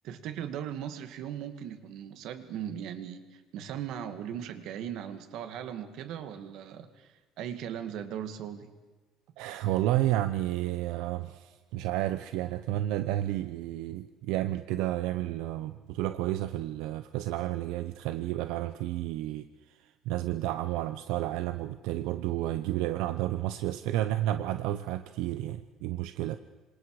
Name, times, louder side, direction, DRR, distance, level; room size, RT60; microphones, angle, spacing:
voice 1, 0.0-8.7, right 9 dB, 55° right, 9 dB, 2.1 m, -38 dB
voice 2, 9.4-26.4, right 14 dB, 80° right, 10 dB, 0.9 m, -31 dB
27.0 x 27.0 x 4.9 m, 1.2 s
cardioid pair, 180°, 0 cm